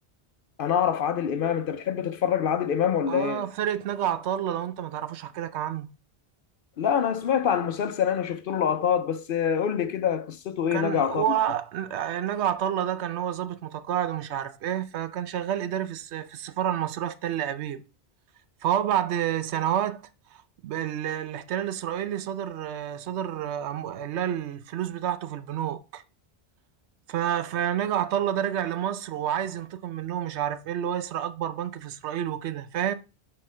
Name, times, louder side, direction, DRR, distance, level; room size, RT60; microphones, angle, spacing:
voice 1, 0.6-3.5 6.8-11.2, left 8 dB, 60° left, 0.7 m, -25 dB
voice 2, 3.1-5.9 10.7-17.8 18.6-20.0 20.3-26.0 27.1-32.9, right 10 dB, 90° right, 0.9 m, -29 dB
9.0 x 4.4 x 3.2 m
omnidirectional pair, 1.1 m